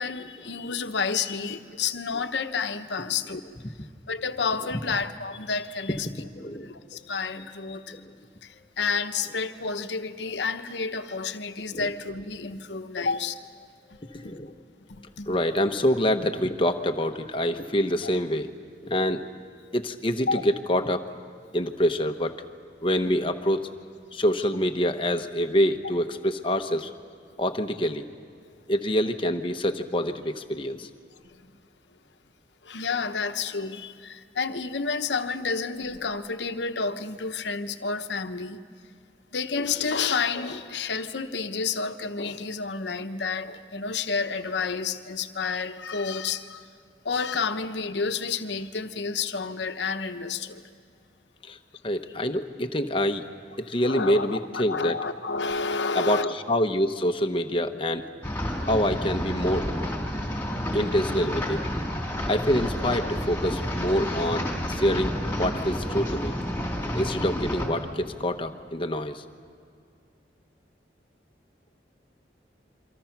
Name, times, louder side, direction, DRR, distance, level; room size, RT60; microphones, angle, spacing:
voice 1, 0.0-3.5 4.1-6.3 6.6-8.0 8.4-13.4 14.2-14.3 14.9-15.4 20.3-20.4 32.6-38.6 39.3-46.7 47.0-50.6 53.8-56.3, left 5 dB, 80° left, 1.0 m, -30 dB
voice 2, 5.9-6.7 7.9-8.0 11.7-11.9 14.1-14.5 15.3-18.5 18.8-19.2 19.7-21.0 21.5-22.4 22.8-23.7 24.1-26.9 27.4-28.1 28.7-30.9 51.5-51.6 51.8-53.3 53.6-55.0 55.9-58.1 58.6-59.7 60.7-61.6 62.3-66.3 66.9-69.2, equal, 30° left, 1.0 m, -26 dB
sound 1, 58.2-67.7, equal, 10° left, 3.3 m, -30 dB
28.0 x 24.5 x 6.0 m
head